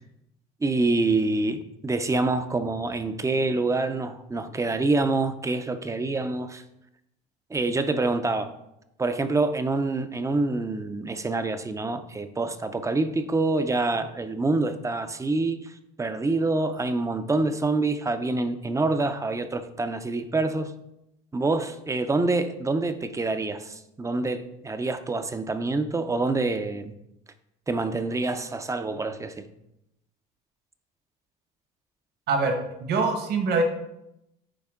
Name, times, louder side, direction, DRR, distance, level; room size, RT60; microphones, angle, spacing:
voice 1, 0.6-6.6 7.5-8.5 9.0-20.7 21.3-26.9 27.7-29.4, right 3 dB, 15° right, 0.5 m, -26 dB
voice 2, 32.3-33.6, right 4 dB, 55° right, 1.4 m, -24 dB
9.9 x 3.4 x 3.7 m
supercardioid pair, 105°, 20 cm